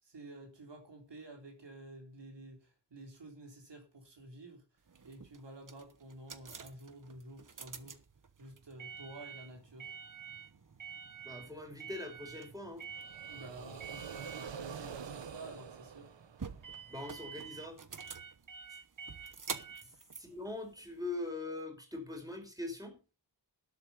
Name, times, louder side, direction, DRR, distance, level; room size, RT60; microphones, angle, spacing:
voice 1, 0.0-4.6 5.0-8.0 8.4-9.9 13.3-16.1 19.8-20.0, right 1 dB, 75° right, 3.7 m, -51 dB
sound 1, 4.9-21.3, right 6 dB, 45° right, 1.2 m, -48 dB
voice 2, 11.2-12.8 16.9-17.8 20.1-23.0, left 2 dB, 10° right, 4.8 m, -42 dB
sound 2, 12.9-16.9, right 7 dB, 90° right, 1.0 m, -46 dB
12.0 x 8.3 x 5.5 m
wide cardioid pair, 90°, 43 cm